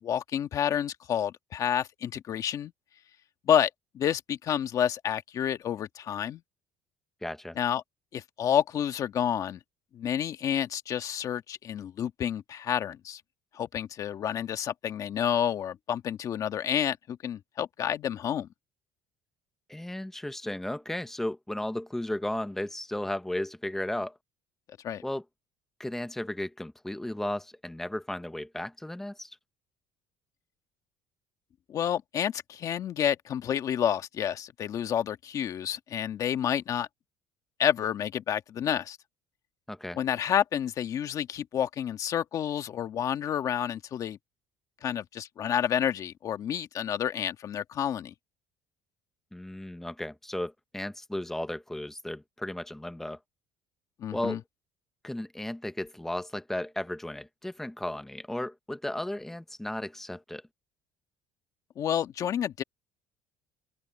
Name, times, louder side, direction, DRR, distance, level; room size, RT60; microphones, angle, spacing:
voice 1, 0.0-2.7 3.4-6.4 7.6-7.8 8.1-9.6 9.9-13.2 13.5-18.5 24.8-25.0 31.7-36.9 37.6-39.0 39.9-44.2 44.8-48.1 54.0-54.4 61.7-62.6, left 9 dB, 40° left, 1.6 m, -29 dB
voice 2, 7.2-7.6 19.7-24.1 25.0-25.2 25.8-29.4 39.7-40.0 49.3-53.2 54.1-54.4 55.0-60.4, left 1 dB, 5° left, 0.9 m, -35 dB
open air
cardioid pair, 150°, 9 cm